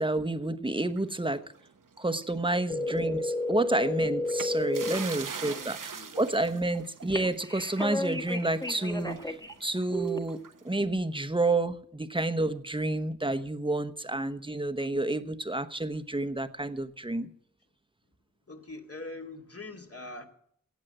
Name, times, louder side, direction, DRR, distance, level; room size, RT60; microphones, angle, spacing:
voice 1, 0.0-1.4 2.0-5.8 6.2-17.3, right 2 dB, 15° right, 11 dB, 1.1 m, -30 dB
sound 1, 0.9-2.5 2.8-3.0 4.2-10.7, right 6 dB, 75° right, 1.0 m, -43 dB
sound 2, 2.7-5.0 7.1-9.5 9.9-10.2, left 1 dB, 10° left, 1.6 m, -31 dB
voice 2, 4.9-6.2 18.5-20.3, left 2 dB, 45° left, 3 dB, 2.4 m, -44 dB
17.0 x 7.4 x 7.7 m, 0.65 s
wide cardioid pair, 50°, 32 cm